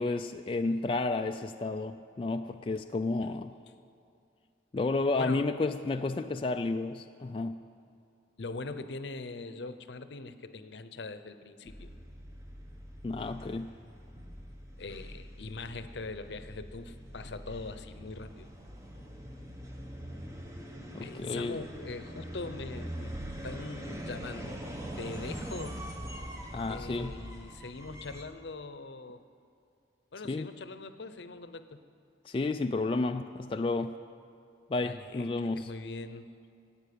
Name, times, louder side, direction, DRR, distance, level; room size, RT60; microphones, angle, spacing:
voice 1, 0.0-3.5 4.7-7.6 13.0-13.7 20.9-21.6 26.5-27.2 30.3-30.5 32.2-33.9 34.7-35.7, left 3 dB, 30° left, 6 dB, 0.3 m, -31 dB
voice 2, 5.2-5.5 8.4-11.9 14.8-18.5 21.0-23.1 23.4-24.6 25.0-25.8 26.7-29.2 30.1-31.8 34.8-36.3, left 3 dB, 70° left, 11 dB, 0.7 m, -42 dB
sound 1, 11.7-28.2, equal, 15° right, 1.1 m, -43 dB
15.5 x 8.8 x 8.4 m, 2.5 s
head